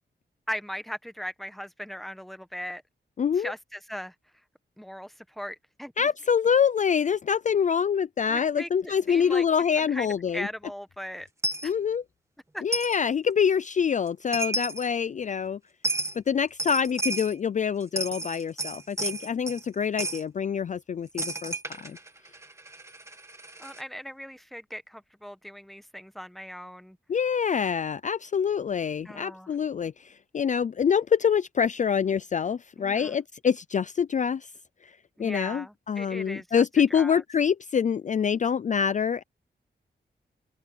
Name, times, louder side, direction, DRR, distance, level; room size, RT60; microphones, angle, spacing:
voice 1, 0.5-2.8 3.3-4.1 4.8-6.1 8.3-9.4 9.8-11.3 11.6-11.7 12.5-12.6 23.6-27.0 29.0-29.6 32.8-33.1 35.2-36.6 36.9-37.2, equal, ahead, 1.1 m, -39 dB
voice 2, 3.2-3.5 6.0-10.5 11.6-12.0 12.6-15.6 16.2-22.0 27.1-34.5 35.2-39.2, left 7 dB, 45° left, 0.4 m, -26 dB
Coin (dropping), 11.4-11.7 12.7-13.0 14.1-14.2 14.3-14.9 15.8-16.2 16.6-17.3 17.8-19.6 20.0-20.2 21.2-23.8, right 2 dB, 15° right, 1.8 m, -32 dB
open air
wide cardioid pair, 145°, 18 cm